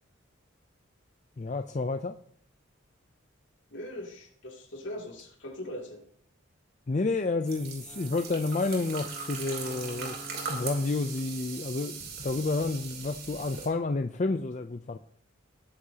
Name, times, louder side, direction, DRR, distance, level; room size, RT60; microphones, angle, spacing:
voice 1, 1.4-2.2 6.9-15.0, left 3 dB, 35° left, 7 dB, 0.4 m, -30 dB
voice 2, 3.7-6.0, left 1 dB, 65° left, 0 dB, 2.7 m, -40 dB
sound 1, 7.5-13.7, right 5 dB, 50° right, 3.1 m, -40 dB
Wind instrument woodwind instrument, 7.8-12.0, left 1 dB, 10° left, 0.9 m, -49 dB
19.0 x 9.7 x 2.8 m, 0.63 s
head